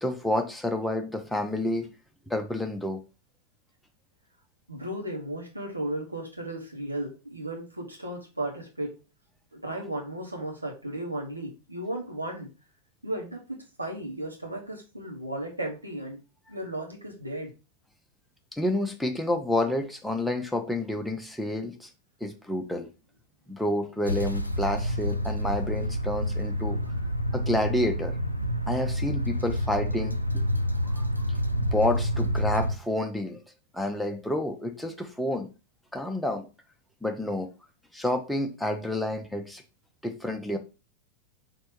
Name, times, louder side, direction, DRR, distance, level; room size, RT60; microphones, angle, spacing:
voice 1, 0.0-1.9 2.3-3.0 18.5-21.9 22.2-22.9 23.5-26.8 27.3-28.2 28.7-30.5 30.9-31.1 31.6-33.4 33.7-35.5 35.9-36.5 37.0-37.5 37.9-39.6 40.0-40.6, left 1 dB, 5° left, 0.7 m, -29 dB
voice 2, 4.7-8.9 9.5-12.5 13.0-16.2 16.5-17.5, right 1 dB, 85° right, 1.0 m, -35 dB
sound 1, 24.1-32.7, equal, 90° left, 0.5 m, -28 dB
4.3 x 2.6 x 4.5 m
figure-of-eight pair, 90°, 0 cm